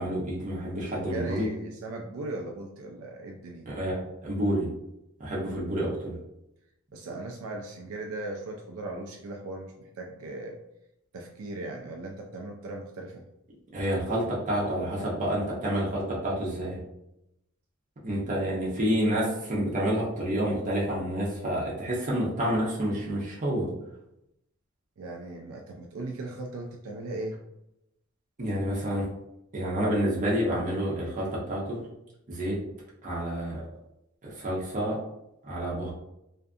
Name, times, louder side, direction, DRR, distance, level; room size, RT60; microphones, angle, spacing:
voice 1, 0.0-1.5 3.7-4.7 5.2-6.1 13.7-16.8 18.0-23.7 28.4-29.0 29.5-31.8 32.3-32.6 33.0-33.6 34.2-35.0 35.4-35.9, equal, 40° right, -5 dB, 0.6 m, -29 dB
voice 2, 0.9-3.7 6.9-10.6 11.1-13.3 25.0-27.4, right 2 dB, 70° right, 1 dB, 0.3 m, -38 dB
2.6 x 2.3 x 2.4 m, 0.86 s
head